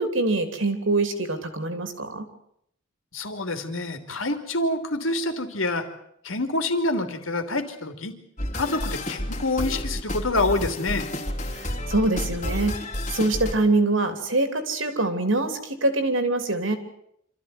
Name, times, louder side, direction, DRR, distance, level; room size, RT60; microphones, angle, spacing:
voice 1, 0.0-2.3 11.5-12.8 13.1-16.8, right 2 dB, 70° right, 8 dB, 3.3 m, -24 dB
voice 2, 3.1-5.9 6.2-8.1 8.5-11.1, left 2 dB, 75° left, 7 dB, 3.1 m, -27 dB
sound 1, 8.4-13.5, left 1 dB, 35° left, 3.2 m, -30 dB
26.5 x 14.5 x 9.5 m, 0.71 s
head